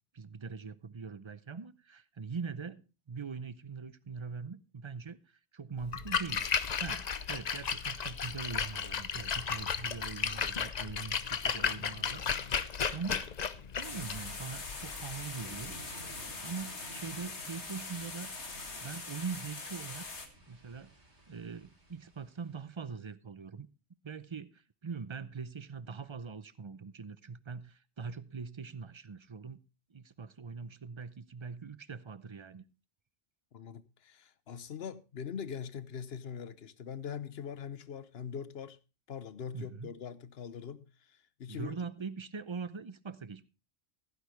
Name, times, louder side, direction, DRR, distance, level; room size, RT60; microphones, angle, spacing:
voice 1, 0.1-5.2 5.5-6.4 6.8-12.6 12.9-15.7 16.4-18.3 18.8-20.1 20.5-20.9 21.3-23.7 24.0-29.6 29.9-32.6 39.5-39.9 41.5-43.4, right 5 dB, 35° right, 0.6 m, -42 dB
Splash splatter, 5.8-15.7, left 6 dB, 45° left, 0.7 m, -34 dB
sound 1, 13.8-20.3, left 3 dB, 85° left, 2.2 m, -43 dB
sound 2, 15.4-22.9, right 2 dB, 85° right, 3.9 m, -54 dB
voice 2, 33.5-38.8 39.1-41.8, left 7 dB, 65° left, 1.1 m, -42 dB
15.5 x 9.7 x 3.2 m
omnidirectional pair, 1.1 m